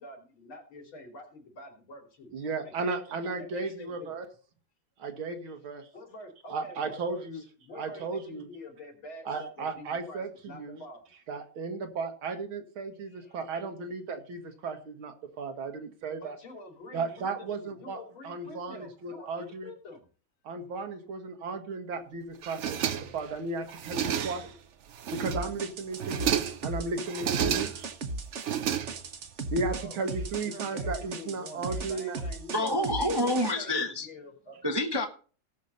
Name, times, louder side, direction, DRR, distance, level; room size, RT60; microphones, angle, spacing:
voice 1, 0.0-2.3 2.6-4.1 5.9-11.2 12.9-13.4 16.2-20.1 29.8-30.1 30.3-34.6, left 1 dB, 80° left, 2 dB, 3.7 m, -47 dB
voice 2, 2.3-4.3 5.0-5.9 6.5-7.4 7.8-8.5 9.3-10.8 11.3-16.4 16.9-18.0 18.2-19.7 20.4-24.5 25.1-26.4 26.6-27.9 29.5-32.2, right 3 dB, 85° right, 5 dB, 2.3 m, -35 dB
sound 1, 22.4-23.3 23.7-24.6 24.9-25.6 25.9-26.7 27.1-27.9 28.3-29.3, right 9 dB, 65° right, 0.7 m, -31 dB
sound 2, 25.3-33.5, right 3 dB, 45° right, 1.0 m, -36 dB
voice 3, 32.5-34.1 34.6-35.1, left 1 dB, 20° right, 4 dB, 0.7 m, -27 dB
17.5 x 6.8 x 4.0 m, 0.39 s
omnidirectional pair, 2.2 m